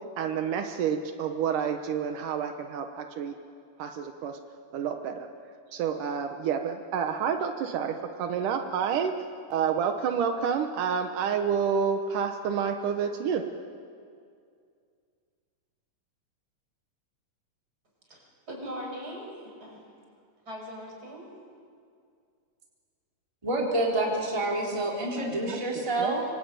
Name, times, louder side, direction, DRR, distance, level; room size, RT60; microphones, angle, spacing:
voice 1, 0.2-3.4 3.8-4.4 4.7-5.3 5.7-9.1 9.5-13.4 25.2-26.2, right 7 dB, 80° right, 6 dB, 2.8 m, -29 dB
voice 2, 18.1-19.8 20.5-21.3, equal, 25° right, 0 dB, 6.8 m, -40 dB
voice 3, 23.4-26.2, right 1 dB, 10° right, -2 dB, 3.7 m, -28 dB
26.0 x 25.0 x 9.1 m, 2.3 s
omnidirectional pair, 3.6 m